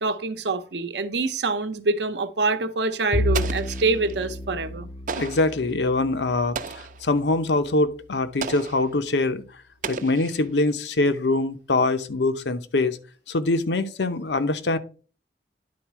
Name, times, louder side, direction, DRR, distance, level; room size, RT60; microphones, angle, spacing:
voice 1, 0.0-4.9, right 3 dB, 80° right, 0.8 m, -25 dB
Bowed string instrument, 3.1-7.7, left 1 dB, 15° left, 0.3 m, -31 dB
Explosion, 3.3-4.2 5.1-5.6 6.5-7.1 8.4-8.9 9.8-10.7, right 5 dB, 45° right, 0.5 m, -34 dB
voice 2, 5.2-9.4 9.9-13.0 13.3-14.8, left 2 dB, 85° left, 0.8 m, -23 dB
10.5 x 4.1 x 4.6 m
head